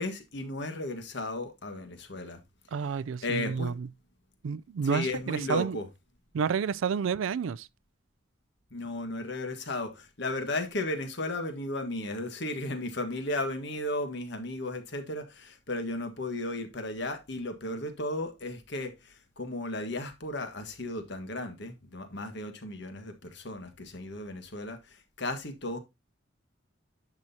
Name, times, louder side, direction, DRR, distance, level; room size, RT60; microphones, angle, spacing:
voice 1, 0.0-2.4 3.2-3.7 4.8-5.8 8.7-25.8, left 2 dB, 60° left, 1.6 m, -35 dB
voice 2, 2.7-3.9 4.4-5.8 6.3-7.7, right 6 dB, 80° right, 0.4 m, -30 dB
10.5 x 6.2 x 2.7 m
head